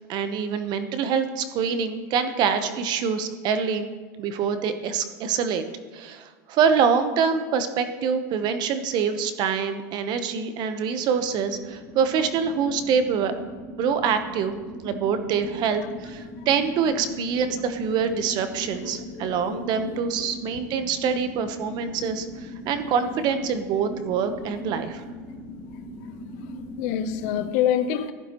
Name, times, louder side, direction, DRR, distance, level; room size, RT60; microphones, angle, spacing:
voice 1, 0.1-3.9 4.2-5.6 5.9-13.3 13.8-25.0, right 6 dB, 45° right, 9 dB, 1.0 m, -25 dB
sound 1, 10.9-27.5, equal, ahead, 3.1 m, -39 dB
voice 2, 18.8-19.6 19.9-20.3 26.8-28.1, left 10 dB, 60° left, 11 dB, 0.9 m, -27 dB
15.5 x 11.5 x 3.1 m, 1.5 s
supercardioid pair, 125°, 10 cm